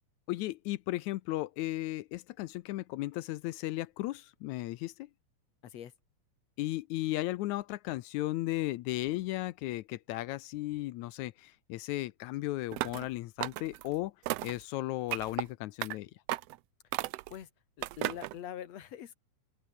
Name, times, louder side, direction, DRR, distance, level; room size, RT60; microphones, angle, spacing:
voice 1, 0.3-5.1 6.6-14.1 14.4-16.1, left 17 dB, 80° left, 2.0 m, -35 dB
voice 2, 5.6-5.9 17.3-17.5 17.8-19.2, left 10 dB, 60° left, 2.7 m, -43 dB
sound 1, 12.7-13.1 13.4-13.9 14.3-14.6 15.1-15.4 15.8-15.9 16.3-16.6 16.9-17.4 17.8-18.3, right 17 dB, 80° right, 1.5 m, -34 dB
open air
omnidirectional pair, 3.5 m